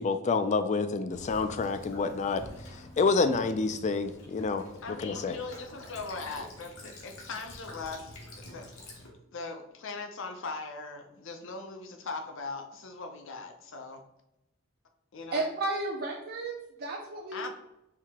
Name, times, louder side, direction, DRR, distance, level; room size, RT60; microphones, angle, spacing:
voice 1, 0.0-5.4, left 4 dB, 35° left, 11 dB, 0.3 m, -28 dB
Child speech kid speaking / Bird vocalization bird call bird song / Stream, 1.1-9.1, left 1 dB, 80° left, 1.3 m, -47 dB
voice 2, 4.8-9.0 9.3-14.0 15.1-15.5 17.3-17.5, left 4 dB, 65° left, 5 dB, 0.6 m, -40 dB
voice 3, 15.3-17.4, right 2 dB, 50° right, -1 dB, 0.5 m, -33 dB
4.7 x 2.8 x 3.5 m, 0.88 s
head